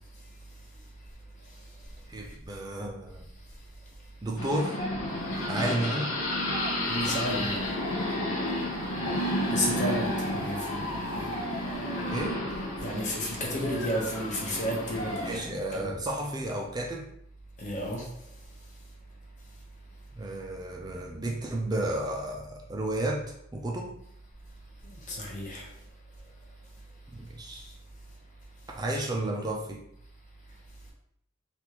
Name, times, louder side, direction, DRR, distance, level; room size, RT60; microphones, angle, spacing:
voice 1, 2.1-3.3 4.2-4.8 5.5-6.1 12.1-12.4 15.2-17.1 20.2-23.3 23.5-24.0 27.1-27.6 28.8-29.8, right 1 dB, 20° right, 0.4 m, -32 dB
sound 1, 4.4-15.3, left 1 dB, 75° left, 0.8 m, -31 dB
voice 2, 6.9-7.6 9.5-11.3 12.8-16.0 17.6-18.1 25.1-25.7, equal, 35° left, 0.8 m, -32 dB
3.4 x 2.4 x 2.9 m
head